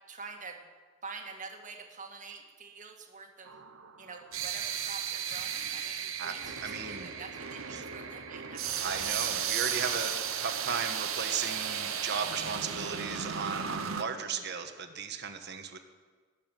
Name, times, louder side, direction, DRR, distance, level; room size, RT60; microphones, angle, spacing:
voice 1, 0.1-0.6 1.0-3.5 4.0-8.9 9.5-9.6 14.2-14.5, right 4 dB, 40° right, 3 dB, 1.9 m, -47 dB
sound 1, 3.5-14.0, right 8 dB, 80° right, 1.3 m, -35 dB
voice 2, 6.2-7.1 7.7-7.8 8.8-10.1 10.4-15.8, right 6 dB, 55° right, 7 dB, 1.4 m, -36 dB
19.5 x 7.4 x 9.2 m, 1.5 s
head